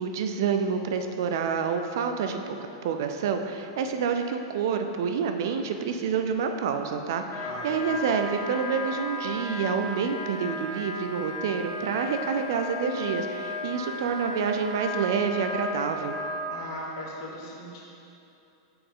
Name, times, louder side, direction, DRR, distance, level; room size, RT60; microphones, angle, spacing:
voice 1, 0.0-2.6 2.8-16.1, right 6 dB, 50° right, 6 dB, 0.4 m, -28 dB
Wind instrument woodwind instrument, 7.2-16.5, left 1 dB, 20° left, 0.8 m, -35 dB
voice 2, 7.4-8.0 16.5-17.8, left 1 dB, 40° left, -4 dB, 1.2 m, -39 dB
6.9 x 5.2 x 3.6 m, 2.8 s
supercardioid pair, 180°, 3 cm